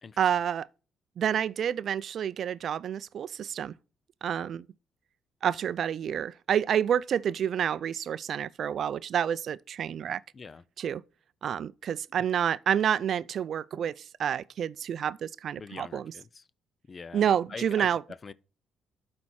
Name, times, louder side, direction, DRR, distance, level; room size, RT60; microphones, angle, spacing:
voice 1, 0.2-0.7 1.2-3.7 4.2-4.7 5.4-10.2 10.8-11.0 11.4-16.1 17.1-18.0, right 9 dB, 60° right, 0.3 m, -29 dB
voice 2, 10.3-10.6 15.6-16.5 16.9-18.3, left 4 dB, 35° left, 0.5 m, -44 dB
11.5 x 4.3 x 4.2 m
cardioid pair, 90°, 0 cm